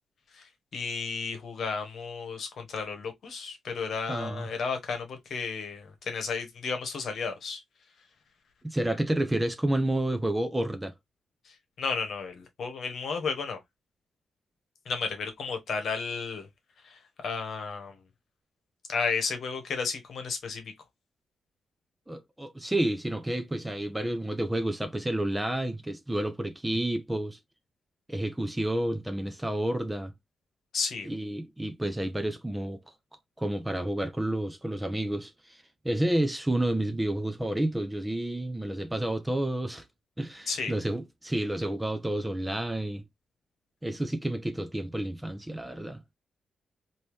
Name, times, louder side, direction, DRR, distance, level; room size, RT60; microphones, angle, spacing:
voice 1, 0.3-7.6 11.4-13.6 14.8-16.5 16.8-18.0 18.9-20.7 30.7-31.1 40.5-40.7, left 5 dB, 55° left, 1.1 m, -33 dB
voice 2, 4.1-4.5 8.6-10.9 22.1-27.4 28.1-30.1 31.1-32.8 33.4-39.8 40.2-43.0 43.8-46.2, right 1 dB, 10° right, 0.4 m, -30 dB
3.6 x 2.7 x 3.0 m
wide cardioid pair, 155°, 0 cm